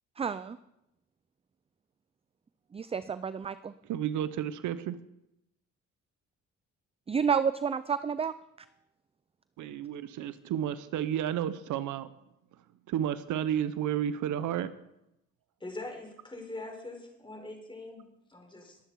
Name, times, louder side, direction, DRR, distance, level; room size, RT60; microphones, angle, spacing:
voice 1, 0.2-0.6 2.7-3.7 7.1-8.3, right 6 dB, 20° right, 14 dB, 0.4 m, -30 dB
voice 2, 3.8-5.0 9.6-12.1 12.9-14.7, right 10 dB, 80° right, 14 dB, 0.7 m, -31 dB
voice 3, 15.6-18.8, left 2 dB, 15° left, 2 dB, 4.1 m, -43 dB
21.0 x 8.1 x 4.6 m, 0.86 s
cardioid pair, 90°, 30 cm